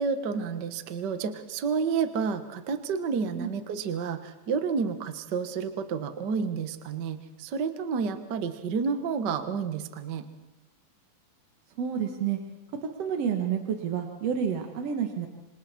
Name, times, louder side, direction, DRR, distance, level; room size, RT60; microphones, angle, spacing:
voice 1, 0.0-10.3, right 5 dB, 85° right, 9 dB, 0.9 m, -30 dB
voice 2, 11.8-12.4 12.8-15.3, right 7 dB, 55° right, 4 dB, 2.0 m, -29 dB
26.5 x 26.5 x 4.3 m, 1.0 s
omnidirectional pair, 4.2 m